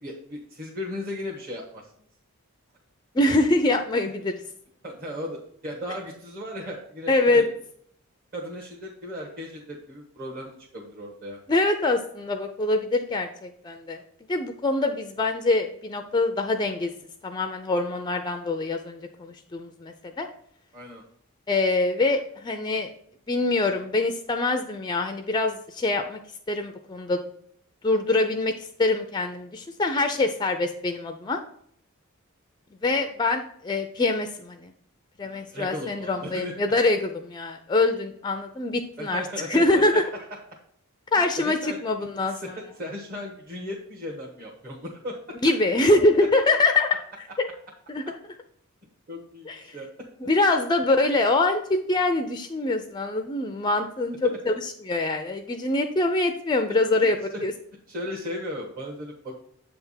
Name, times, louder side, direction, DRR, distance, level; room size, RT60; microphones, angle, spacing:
voice 1, 0.0-1.9 4.8-7.5 8.3-11.4 20.7-21.0 35.2-36.5 39.0-40.2 41.4-41.8 42.3-45.4 49.1-49.9 54.2-54.4 56.7-57.1 57.3-57.5 57.9-59.3, left 1 dB, 40° right, -4 dB, 1.3 m, -36 dB
voice 2, 3.1-4.3 7.1-7.5 11.5-14.0 14.3-16.9 17.2-20.3 21.5-22.9 23.3-26.2 26.5-27.2 27.8-31.4 32.8-34.7 35.2-39.2 39.5-40.0 41.1-42.4 45.4-46.9 47.4-47.5 47.9-48.0 49.5-49.8 50.2-57.2 57.4-57.5, left 2 dB, 20° left, 6 dB, 0.4 m, -24 dB
7.9 x 3.4 x 5.5 m, 0.68 s
head